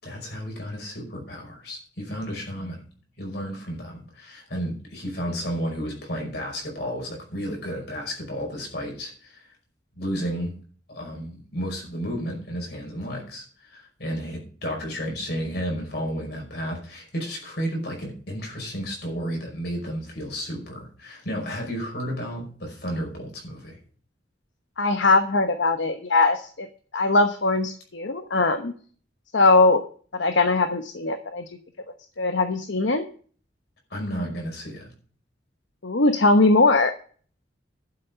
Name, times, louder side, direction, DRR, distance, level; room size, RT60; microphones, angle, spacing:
voice 1, 0.0-2.9 3.2-9.5 10.0-10.5 10.9-23.8 33.9-34.9, equal, 60° left, 1 dB, 5.3 m, -32 dB
voice 2, 24.8-26.7 26.9-28.7 29.3-29.8 30.2-31.4 32.2-33.0 35.8-36.9, left 3 dB, 80° left, 7 dB, 1.0 m, -20 dB
12.0 x 6.8 x 5.7 m, 0.43 s
head